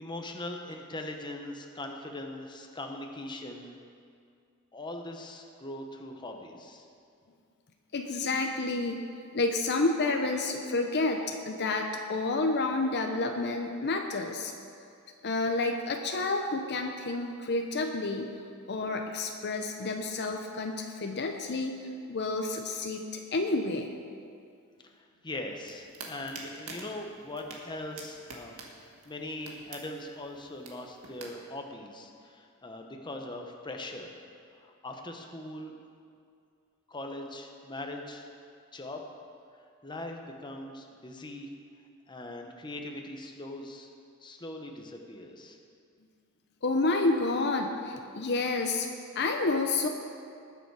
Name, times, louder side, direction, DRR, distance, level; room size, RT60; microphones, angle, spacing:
voice 1, 0.0-3.8 4.7-6.9 24.8-28.6 29.0-34.1 34.6-35.7 36.9-38.3 38.7-39.0 39.8-41.5 42.1-43.9 44.2-45.6, left 1 dB, 20° left, 2 dB, 1.0 m, -41 dB
voice 2, 7.9-9.0 9.3-14.5 15.2-18.3 18.7-21.8 22.1-23.9 46.6-48.9 49.1-49.9, left 3 dB, 50° left, 4 dB, 0.7 m, -29 dB
sound 1, 25.5-31.3, right 3 dB, 75° right, 1.8 m, -47 dB
19.5 x 6.9 x 4.8 m, 2.3 s
head